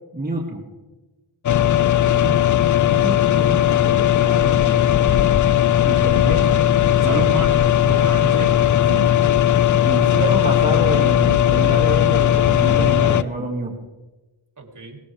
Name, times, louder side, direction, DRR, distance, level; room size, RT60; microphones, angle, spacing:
voice 1, 0.1-0.6 2.9-5.3 5.8-6.7 7.0-7.4 8.9-9.1 9.8-13.7, right 2 dB, 15° right, -2 dB, 2.3 m, -28 dB
sound 1, 1.5-13.2, left 11 dB, 40° left, 0.5 m, -17 dB
voice 2, 2.0-2.5 7.0-8.6 12.8-13.0 14.6-15.0, right 4 dB, 35° right, 0 dB, 3.8 m, -30 dB
19.5 x 15.5 x 3.5 m, 1.2 s
cardioid pair, 50°, 50 cm